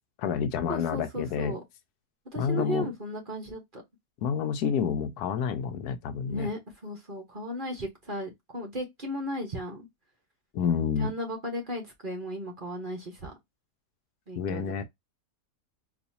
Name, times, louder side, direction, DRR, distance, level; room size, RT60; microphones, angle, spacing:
voice 1, 0.2-1.6 2.4-2.9 4.2-6.5 10.5-11.1 14.4-14.8, left 7 dB, 75° left, 1.1 m, -29 dB
voice 2, 0.7-1.6 2.3-3.8 6.3-9.9 11.0-13.3 14.3-14.8, equal, 35° right, 1.2 m, -35 dB
4.1 x 2.7 x 2.7 m
omnidirectional pair, 1.7 m